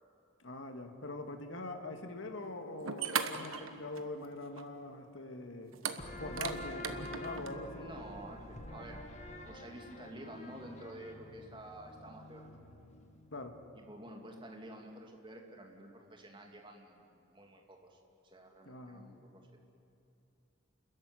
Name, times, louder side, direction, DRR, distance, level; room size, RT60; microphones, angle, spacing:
voice 1, 0.4-5.8 6.2-7.9 13.3-13.6 18.7-19.1, left 2 dB, 70° left, 6 dB, 1.9 m, -43 dB
sound 1, 2.4-2.5 2.8-4.3 4.6-4.7 5.7-7.5, right 6 dB, 85° right, 1.3 m, -38 dB
sound 2, 6.0-13.3, left 1 dB, 35° left, 1.8 m, -47 dB
voice 2, 7.8-9.0 9.5-12.6 13.8-18.0 18.2-19.6, right 1 dB, 25° right, 1 dB, 2.6 m, -50 dB
30.0 x 14.0 x 9.8 m, 2.6 s
head